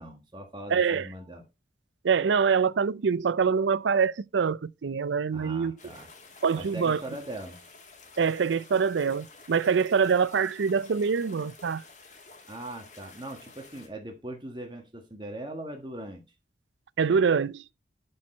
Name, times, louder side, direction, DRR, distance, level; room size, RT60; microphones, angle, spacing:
voice 1, 0.0-1.4 5.3-6.1 6.5-7.6 12.5-16.2, right 1 dB, 25° right, 1.4 m, -40 dB
voice 2, 0.7-1.1 2.0-5.7 6.4-7.0 8.2-11.8 17.0-17.6, right 6 dB, 90° right, 0.4 m, -25 dB
sound 1, 5.8-13.9, left 3 dB, 40° left, 1.9 m, -51 dB
10.5 x 4.5 x 4.3 m
head